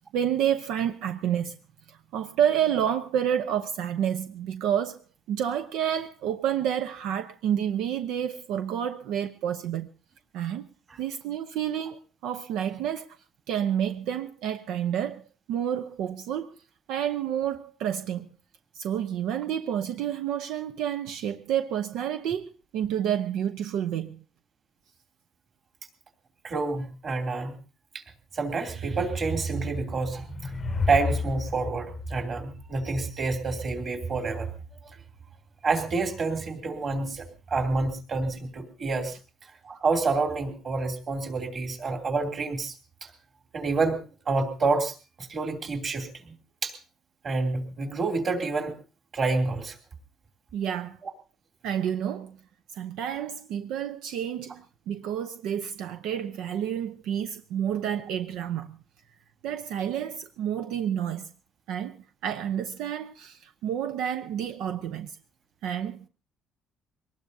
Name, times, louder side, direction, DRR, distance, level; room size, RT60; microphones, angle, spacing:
voice 1, 0.1-1.5 1.9-9.9 10.3-10.7 11.0-13.1 13.5-16.5 16.9-18.3 18.7-24.2 50.5-51.0 51.6-52.4 52.7-58.8 59.4-61.3 61.7-65.2 65.6-66.1, right 9 dB, 80° right, 0.7 m, -29 dB
voice 2, 26.4-27.6 27.9-28.0 28.3-30.5 30.9-34.5 35.6-39.2 39.6-42.7 43.0-43.1 43.5-44.0 44.3-46.3 46.6-46.7 47.2-48.7 49.1-49.8, right 3 dB, 35° right, 2.8 m, -28 dB
sound 1, 29.8-33.3, left 5 dB, 30° left, 0.7 m, -32 dB
23.5 x 19.5 x 2.7 m
cardioid pair, 145°, 0 cm